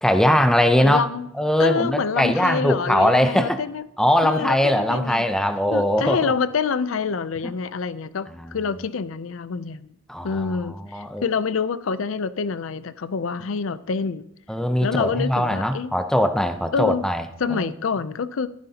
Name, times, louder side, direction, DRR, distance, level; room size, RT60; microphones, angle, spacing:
voice 1, 0.0-1.1 1.4-3.6 4.0-6.3 8.4-8.5 10.1-10.5 10.9-11.2 14.5-17.2 17.5-17.7, equal, 5° left, 8 dB, 0.6 m, -20 dB
voice 2, 0.7-1.3 1.6-3.8 4.2-5.2 5.7-9.9 10.2-14.2 14.8-15.9 16.7-17.0 17.4-18.5, left 5 dB, 70° left, 15 dB, 0.5 m, -26 dB
14.5 x 9.4 x 2.8 m, 0.79 s
head